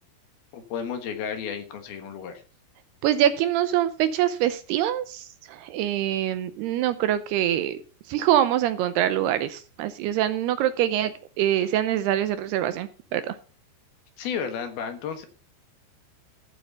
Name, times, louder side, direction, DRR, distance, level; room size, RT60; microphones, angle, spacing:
voice 1, 0.5-2.3 14.2-15.3, left 7 dB, 65° left, 7 dB, 3.2 m, -32 dB
voice 2, 3.0-7.8 8.1-13.4, right 11 dB, 80° right, 12 dB, 2.5 m, -24 dB
14.5 x 7.7 x 5.5 m, 0.36 s
omnidirectional pair, 5.1 m